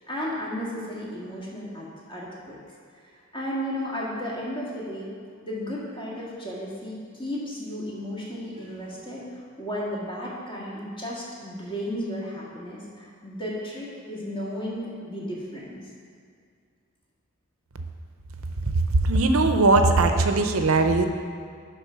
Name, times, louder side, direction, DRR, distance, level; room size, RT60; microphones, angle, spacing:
voice 1, 0.1-2.6 3.3-5.1 5.4-9.2 9.6-15.8, equal, 25° left, -6 dB, 1.8 m, -34 dB
voice 2, 19.0-21.1, right 3 dB, 90° right, 7 dB, 0.7 m, -19 dB
10.5 x 3.7 x 5.7 m, 2.2 s
head